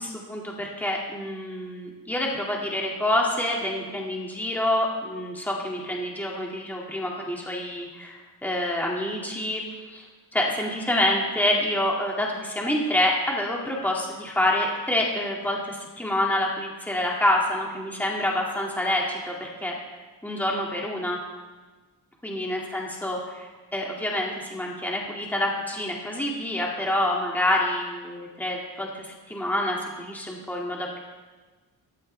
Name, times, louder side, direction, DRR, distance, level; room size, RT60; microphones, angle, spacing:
voice 1, 0.0-8.1 8.4-9.6 9.9-10.0 10.3-19.7 20.2-21.2 22.2-31.0, left 1 dB, 5° left, -2 dB, 2.2 m, -27 dB
15.5 x 14.0 x 3.3 m, 1.3 s
cardioid pair, 100°, 39 cm